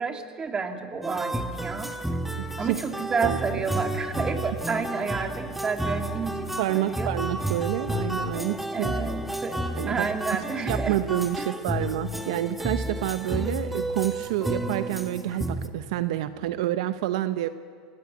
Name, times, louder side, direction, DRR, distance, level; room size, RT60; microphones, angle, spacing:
voice 1, 0.0-1.9 2.6-7.1 8.7-9.6 9.9-11.0 11.4-11.5, right 5 dB, 25° right, 5 dB, 2.9 m, -30 dB
sound 1, 1.0-15.7, right 1 dB, 5° right, 1.7 m, -31 dB
voice 2, 6.6-8.9 9.8-10.1 10.7-17.5, right 14 dB, 75° right, 11 dB, 0.9 m, -28 dB
28.5 x 18.5 x 9.4 m, 2.1 s
hypercardioid pair, 105°, 4 cm